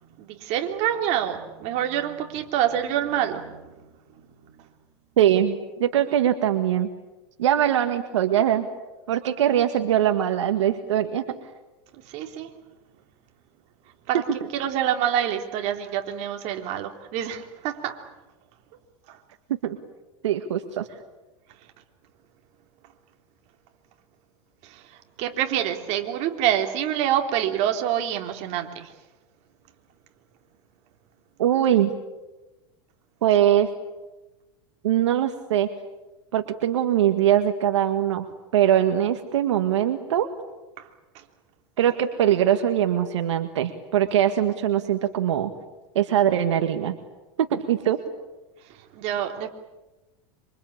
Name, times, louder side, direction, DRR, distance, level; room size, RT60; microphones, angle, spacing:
voice 1, 0.0-3.8 11.9-12.5 14.1-14.2 14.5-18.0 19.1-19.2 24.6-28.9 40.8-40.9 41.1-41.2 48.7-49.5, right 10 dB, 50° right, 5 dB, 3.4 m, -27 dB
voice 2, 5.2-6.9 7.4-8.7 9.1-11.2 19.6-19.8 20.2-20.9 31.4-31.9 33.2-33.7 34.8-35.7 36.3-38.3 38.5-40.3 41.8-45.5 46.0-47.0 47.4-48.0, right 10 dB, 85° right, 8 dB, 1.8 m, -22 dB
26.5 x 25.0 x 8.8 m, 1.1 s
supercardioid pair, 115°, 15 cm